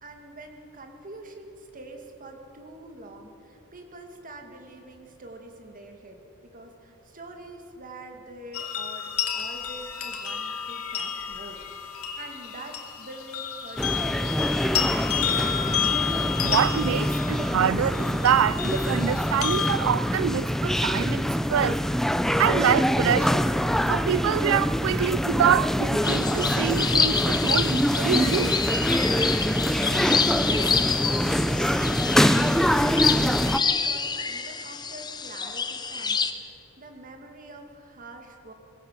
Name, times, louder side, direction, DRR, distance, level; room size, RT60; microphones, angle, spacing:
voice 1, 0.0-14.8 29.8-30.2 30.4-38.5, right 1 dB, 40° right, 2.2 m, -45 dB
sound 1, 8.5-19.8, left 8 dB, 80° left, 2.0 m, -31 dB
sound 2, 13.8-33.6, equal, ahead, 0.4 m, -24 dB
voice 2, 16.4-21.8 22.4-23.4 23.9-28.5, right 9 dB, 65° right, 0.4 m, -25 dB
sound 3, 26.0-36.3, left 5 dB, 20° left, 0.9 m, -27 dB
21.5 x 16.0 x 7.4 m
head